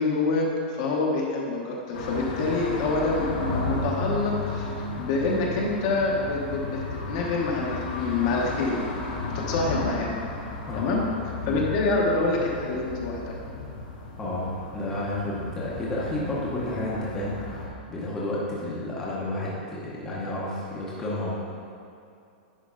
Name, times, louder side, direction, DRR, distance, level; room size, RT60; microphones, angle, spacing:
voice 1, 0.0-4.7 5.0-6.8 7.1-10.1 10.7-11.0 11.5-13.2, left 3 dB, 35° left, -2 dB, 1.0 m, -26 dB
sound 1, 1.9-17.7, left 2 dB, 55° left, 1.3 m, -34 dB
voice 2, 14.2-21.3, left 1 dB, 10° left, -7 dB, 0.8 m, -31 dB
10.5 x 4.5 x 3.8 m, 2.5 s
supercardioid pair, 180°, 5 cm